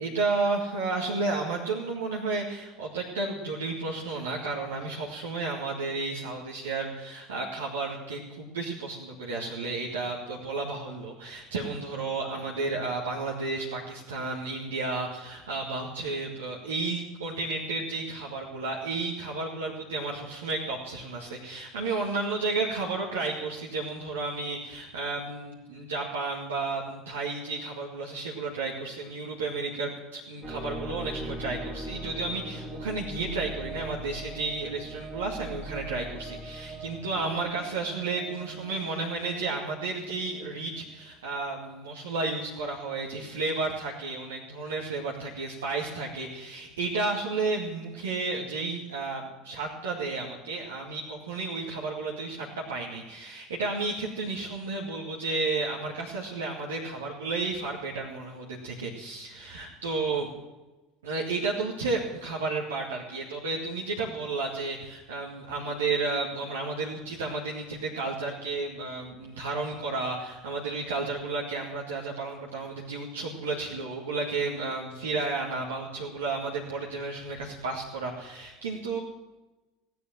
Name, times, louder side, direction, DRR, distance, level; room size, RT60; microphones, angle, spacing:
voice 1, 0.0-60.3 61.0-79.0, right 3 dB, 70° right, -3 dB, 1.9 m, -32 dB
sound 1, 30.4-41.4, right 2 dB, 30° right, 2.4 m, -40 dB
16.5 x 9.4 x 7.7 m, 1.1 s
figure-of-eight pair, 70°, 0 cm